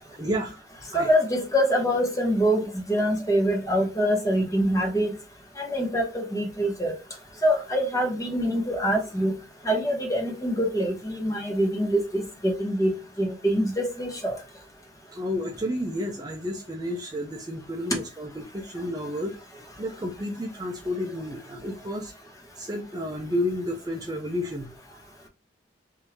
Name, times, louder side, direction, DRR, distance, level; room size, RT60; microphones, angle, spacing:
voice 1, 0.1-0.6 0.9-1.1 14.3-14.4 15.1-19.4 19.8-22.1 22.5-25.0, equal, 20° right, 0.4 m, -31 dB
voice 2, 0.9-5.1 5.6-6.9 7.4-9.3 9.6-14.4, equal, 15° left, 1.0 m, -25 dB
3.6 x 2.7 x 2.8 m
head